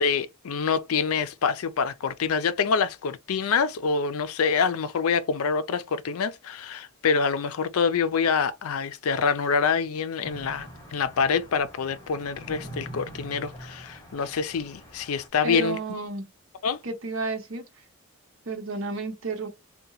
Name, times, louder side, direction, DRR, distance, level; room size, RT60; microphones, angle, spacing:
voice 1, 0.0-16.0 16.6-16.8, left 5 dB, 75° left, 0.4 m, -26 dB
sound 1, 10.2-15.3, right 1 dB, 15° left, 1.2 m, -44 dB
voice 2, 15.4-16.3 16.8-17.6 18.5-19.5, right 3 dB, 65° right, 0.9 m, -31 dB
2.8 x 2.2 x 3.9 m
head